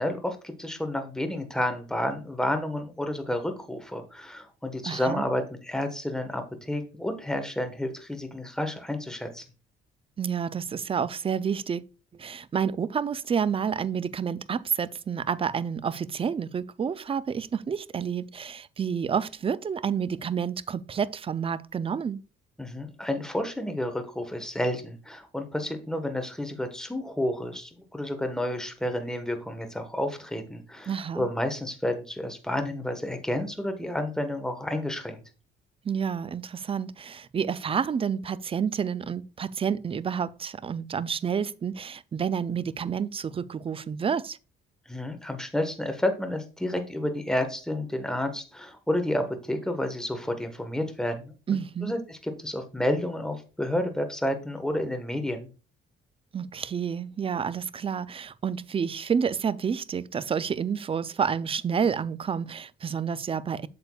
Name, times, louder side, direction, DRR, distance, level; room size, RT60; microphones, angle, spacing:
voice 1, 0.0-9.4 22.6-35.2 44.9-51.3 51.8-55.5, left 1 dB, 5° left, 1.2 m, -30 dB
voice 2, 4.8-5.2 10.2-11.8 12.1-22.2 30.9-31.3 35.8-44.4 51.5-51.9 56.3-63.7, right 7 dB, 30° right, 0.4 m, -29 dB
8.0 x 6.7 x 2.3 m
cardioid pair, 90°, 20 cm